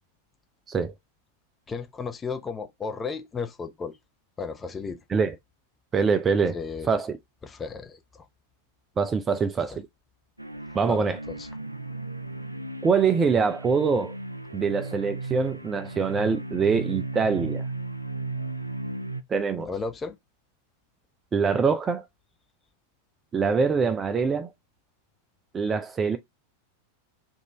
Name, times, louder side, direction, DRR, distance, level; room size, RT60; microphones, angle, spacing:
voice 1, 1.7-3.9 4.4-5.0 6.5-6.9 7.4-8.2 10.9-11.5 19.6-20.2, left 4 dB, 15° left, 0.7 m, -34 dB
voice 2, 5.9-6.6 6.9-7.2 9.0-9.9 10.7-11.2 12.8-14.1 14.5-17.6 19.3-19.7 21.3-22.0 23.3-24.5 25.5-26.2, right 5 dB, 20° right, 0.4 m, -24 dB
sound 1, 10.4-19.2, right 2 dB, 85° right, 0.3 m, -35 dB
3.5 x 2.5 x 4.1 m
figure-of-eight pair, 90°, 0 cm